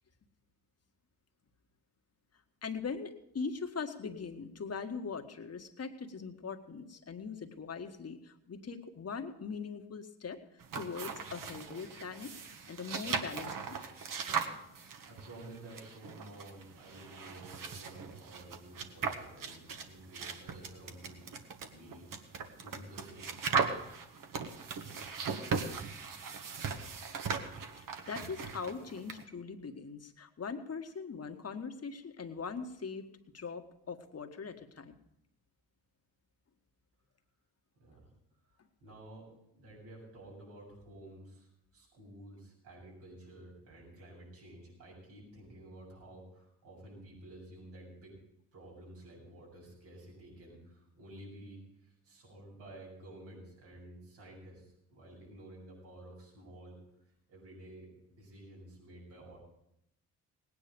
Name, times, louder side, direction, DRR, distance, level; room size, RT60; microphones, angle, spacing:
voice 1, 2.6-10.4 10.7-12.3 12.7-14.1 27.8-34.9, left 5 dB, 40° left, 6 dB, 1.7 m, -41 dB
sound 1, 10.6-29.2, right 5 dB, 55° right, 1.7 m, -39 dB
voice 2, 15.0-21.4 21.7-23.3 37.8-38.1 38.5-48.2 48.5-59.4, right 1 dB, 85° right, -4 dB, 7.5 m, -52 dB
18.0 x 9.7 x 5.3 m, 0.80 s
supercardioid pair, 60°, 39 cm